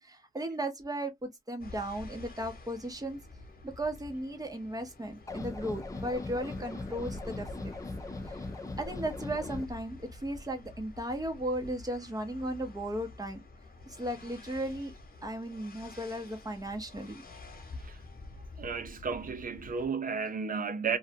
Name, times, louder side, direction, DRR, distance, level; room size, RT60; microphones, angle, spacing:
voice 1, 0.0-3.2 3.6-7.7 8.3-8.4 8.8-13.4 13.9-14.9 15.2-17.2, right 1 dB, 25° right, 0.8 m, -36 dB
sound 1, 1.6-19.9, left 3 dB, 70° left, 0.9 m, -49 dB
sound 2, 5.3-9.7, left 2 dB, 20° left, 0.3 m, -39 dB
voice 2, 18.6-21.0, right 5 dB, 65° right, 0.5 m, -33 dB
2.6 x 2.1 x 2.5 m
wide cardioid pair, 105°, 16 cm